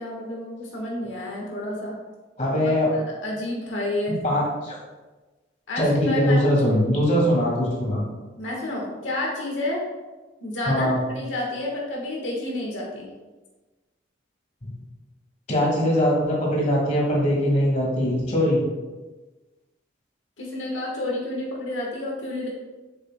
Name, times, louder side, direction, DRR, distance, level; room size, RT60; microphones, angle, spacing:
voice 1, 0.0-1.9 2.6-4.1 5.7-6.4 8.4-9.8 10.4-13.1 20.4-22.5, left 1 dB, 80° left, -3 dB, 1.4 m, -30 dB
voice 2, 2.4-2.9 4.2-4.8 5.8-8.0 10.7-11.0 14.6-14.7 15.5-18.6, equal, 40° left, -3 dB, 1.8 m, -21 dB
7.4 x 6.9 x 2.2 m, 1.2 s
head